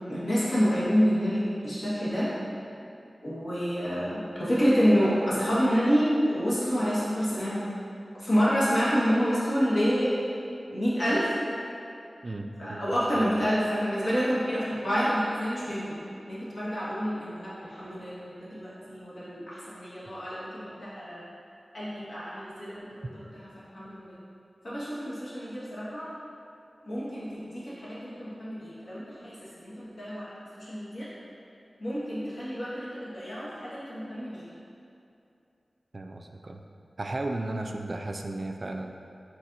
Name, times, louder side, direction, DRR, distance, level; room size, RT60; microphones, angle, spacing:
voice 1, 0.1-2.3 3.2-7.6 8.2-10.1 10.7-11.3 12.6-16.0 16.3-21.2 21.7-23.0 23.3-23.5 23.7-24.1 24.6-26.1 26.8-30.2 30.6-31.1 31.8-34.4, equal, 70° left, -10 dB, 1.4 m, -28 dB
voice 2, 12.2-13.5 35.9-36.6 37.0-38.9, right 2 dB, 55° right, 4 dB, 0.3 m, -35 dB
4.6 x 4.2 x 2.6 m, 2.7 s
cardioid pair, 40°, 0 cm